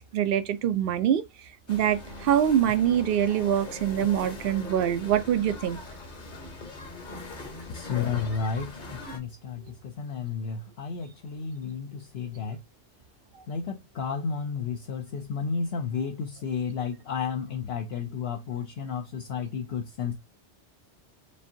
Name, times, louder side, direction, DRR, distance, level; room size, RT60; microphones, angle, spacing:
voice 1, 0.1-1.2 1.7-5.8, right 10 dB, 65° right, 0.7 m, -24 dB
sound 1, 1.7-9.2, left 2 dB, 45° left, 1.1 m, -41 dB
voice 2, 7.7-8.8 9.1-12.6 13.5-20.1, left 6 dB, 65° left, 0.8 m, -32 dB
5.2 x 2.6 x 2.7 m
omnidirectional pair, 1.2 m